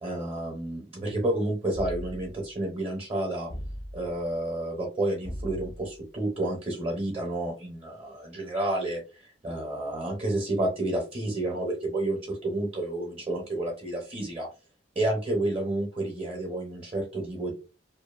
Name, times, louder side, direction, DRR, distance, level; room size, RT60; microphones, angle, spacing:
voice 1, 0.0-3.5 3.9-14.5 15.0-17.5, right 1 dB, 35° right, 0 dB, 0.7 m, -30 dB
sound 1, 1.7-2.5 3.5-4.2 5.2-6.0, equal, 25° left, 0.3 m, -38 dB
2.6 x 2.4 x 2.4 m, 0.30 s
head